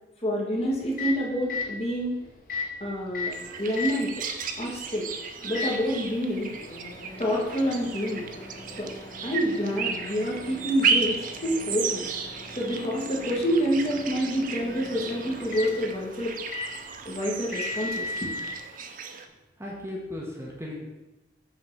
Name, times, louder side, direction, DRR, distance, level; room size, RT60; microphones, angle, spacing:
voice 1, 0.2-2.1 2.8-4.1 4.6-5.1 5.4-6.5 7.2-8.3 8.8-8.9 9.2-12.1 12.6-16.4 17.0-18.1, equal, 35° left, -3 dB, 1.5 m, -27 dB
Microwave oven, 0.6-18.6, left 3 dB, 50° left, 1.1 m, -39 dB
sound 1, 3.3-19.3, right 5 dB, 45° right, 0.5 m, -34 dB
voice 2, 19.6-20.9, left 1 dB, 15° right, -3 dB, 1.0 m, -36 dB
6.1 x 3.8 x 5.9 m, 1.0 s
head